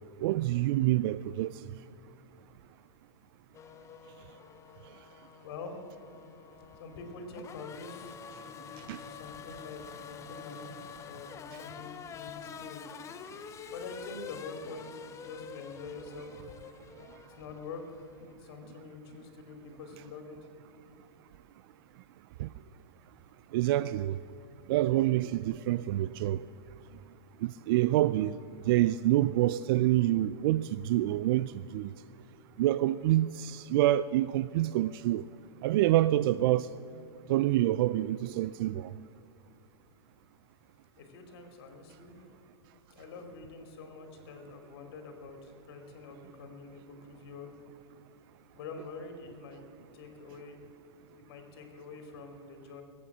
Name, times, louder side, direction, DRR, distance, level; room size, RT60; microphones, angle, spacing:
voice 1, 0.2-1.5 8.9-9.0 22.4-22.5 23.5-24.2 24.7-26.4 27.4-28.3 28.7-31.9 32.6-35.2 35.6-36.7 37.3-38.9, right 14 dB, 55° right, 0.4 m, -27 dB
Race car auto racing / Accelerating revving vroom, 3.5-18.3, left 7 dB, 20° left, 0.7 m, -47 dB
voice 2, 5.4-5.9 6.8-10.8 11.0-12.8 13.7-16.5 17.4-20.4 41.0-42.3 42.9-47.5 48.5-49.6 49.9-50.6 51.1-52.8, left 4 dB, 60° left, 3.0 m, -46 dB
20.0 x 8.7 x 7.3 m
hypercardioid pair, 125°, 14 cm